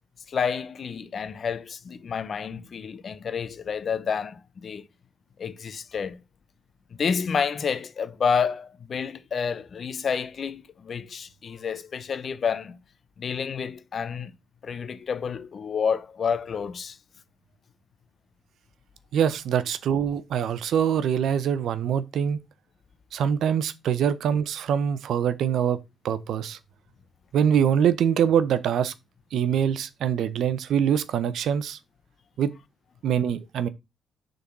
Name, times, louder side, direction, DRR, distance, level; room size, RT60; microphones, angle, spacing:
voice 1, 0.3-4.8 5.4-6.2 6.9-12.8 13.2-14.3 14.6-17.0, left 6 dB, 50° left, 0.8 m, -29 dB
voice 2, 19.1-22.4 23.1-25.8 26.0-26.6 27.3-28.9 29.3-31.8 32.4-32.5 33.0-33.7, right 8 dB, 70° right, 0.7 m, -24 dB
6.9 x 4.0 x 5.9 m
cardioid pair, 90°, 0 cm